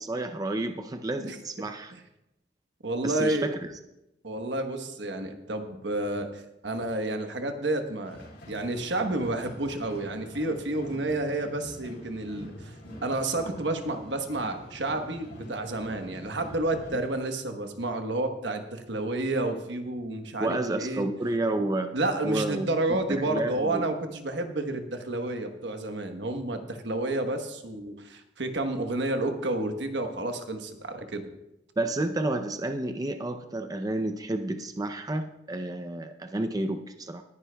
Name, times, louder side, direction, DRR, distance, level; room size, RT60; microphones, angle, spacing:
voice 1, 0.0-1.9 3.0-3.6 20.4-21.9 22.2-23.8 31.8-37.2, right 2 dB, 20° right, 7 dB, 0.5 m, -30 dB
voice 2, 2.8-3.5 4.2-8.2 8.5-12.7 13.0-21.1 21.9-31.3, right 2 dB, 75° right, 6 dB, 1.1 m, -30 dB
sound 1, 8.0-17.0, equal, 75° left, 3.7 m, -45 dB
19.5 x 9.9 x 2.3 m, 0.89 s
head